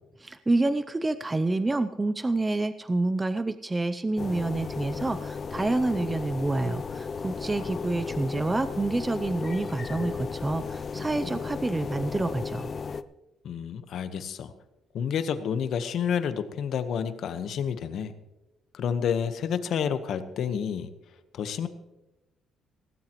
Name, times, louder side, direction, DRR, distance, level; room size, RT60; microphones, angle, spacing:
voice 1, 0.2-12.7, right 2 dB, 15° right, 11 dB, 0.5 m, -28 dB
sound 1, 4.2-13.0, left 5 dB, 35° left, 0.5 m, -35 dB
voice 2, 13.4-14.5 14.9-18.1 18.7-20.9 21.3-21.7, left 7 dB, 65° left, 11 dB, 1.1 m, -29 dB
17.5 x 16.0 x 3.1 m, 1.0 s
cardioid pair, 130°, 0 cm